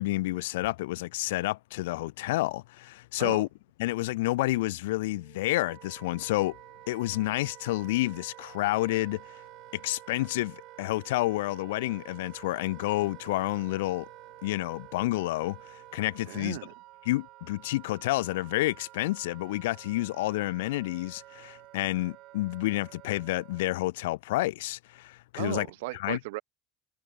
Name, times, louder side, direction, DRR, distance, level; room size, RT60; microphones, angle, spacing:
voice 1, 0.0-3.5 3.8-6.6 6.9-9.2 9.7-14.1 14.4-16.6 17.1-25.7 26.0-26.2, left 18 dB, 75° left, 0.3 m, -29 dB
Wind instrument woodwind instrument, 5.1-23.9, right 18 dB, 60° right, 5.1 m, -50 dB
voice 2, 16.3-16.7 25.4-26.4, right 23 dB, 75° right, 0.7 m, -36 dB
hypercardioid pair, 80°, 0 cm